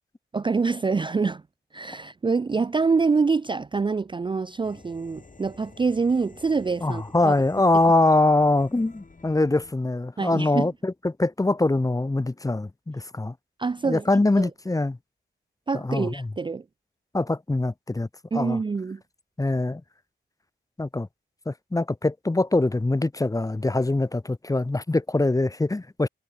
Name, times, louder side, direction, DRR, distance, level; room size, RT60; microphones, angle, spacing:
voice 1, 0.3-1.4 1.7-7.3 10.2-10.7 13.6-14.0 14.4-14.5 15.7-16.6 18.3-19.0, right 4 dB, 25° right, 0.4 m, -25 dB
sound 1, 4.6-9.7, left 3 dB, 40° left, 4.8 m, -50 dB
voice 2, 6.8-13.3 13.8-15.0 15.7-16.3 17.1-18.6 19.4-19.8 20.8-21.1 21.5-26.1, left 2 dB, 15° left, 0.7 m, -23 dB
cardioid pair, 75°, 20 cm